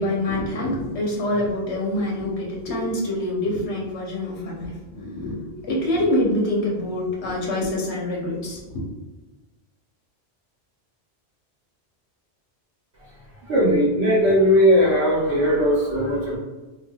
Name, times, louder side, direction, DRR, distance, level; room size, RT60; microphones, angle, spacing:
voice 1, 0.0-5.4 5.6-8.8, left 1 dB, 90° left, -3 dB, 1.1 m, -25 dB
voice 2, 13.5-16.4, equal, 80° right, -7 dB, 1.0 m, -18 dB
3.3 x 2.3 x 2.3 m, 1.2 s
omnidirectional pair, 1.1 m